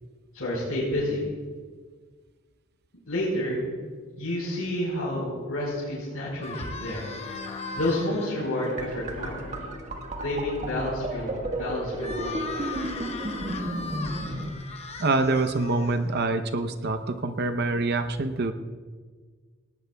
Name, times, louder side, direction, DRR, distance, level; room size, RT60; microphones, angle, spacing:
voice 1, 0.3-1.2 3.1-3.6 4.2-7.1 7.7-9.6 10.2-12.5, left 1 dB, 85° left, -7 dB, 4.5 m, -30 dB
sound 1, 6.4-8.3 11.9-16.3, left 3 dB, 30° left, 1.0 m, -38 dB
Bowed string instrument, 6.7-11.6, left 3 dB, 75° right, 4.0 m, -45 dB
sound 2, 8.6-14.5, right 1 dB, 35° right, 1.5 m, -33 dB
voice 2, 15.0-18.5, right 3 dB, 50° right, 9 dB, 0.7 m, -25 dB
17.5 x 17.5 x 2.3 m, 1.5 s
head